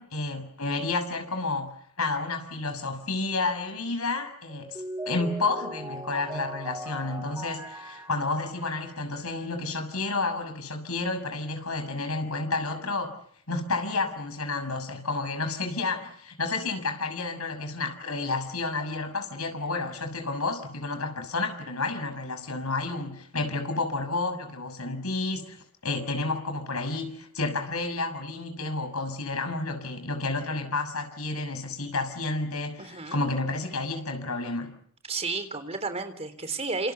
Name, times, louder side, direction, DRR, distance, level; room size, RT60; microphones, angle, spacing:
voice 1, 0.0-13.1 13.5-25.6 25.8-34.8, left 3 dB, 85° left, 8 dB, 6.4 m, -31 dB
Mallet percussion, 4.5-9.5, right 1 dB, 15° right, 2.7 m, -39 dB
voice 2, 32.8-33.2 35.1-36.9, right 3 dB, 30° right, 9 dB, 3.6 m, -32 dB
28.5 x 27.5 x 7.2 m, 0.65 s
head